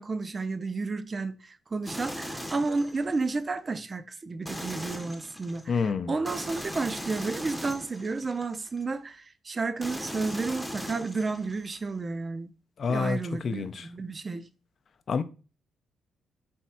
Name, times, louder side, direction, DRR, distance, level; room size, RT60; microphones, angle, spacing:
voice 1, 0.0-5.8 6.1-12.5 12.9-14.5, right 3 dB, 35° right, 0.5 m, -32 dB
sound 1, 1.8-3.4 4.4-5.6 6.3-8.8 9.8-11.8, equal, ahead, 0.7 m, -39 dB
voice 2, 5.7-6.1 12.8-13.9 15.1-15.2, left 5 dB, 55° left, 0.5 m, -28 dB
3.5 x 3.1 x 4.2 m
cardioid pair, 75°, 0 cm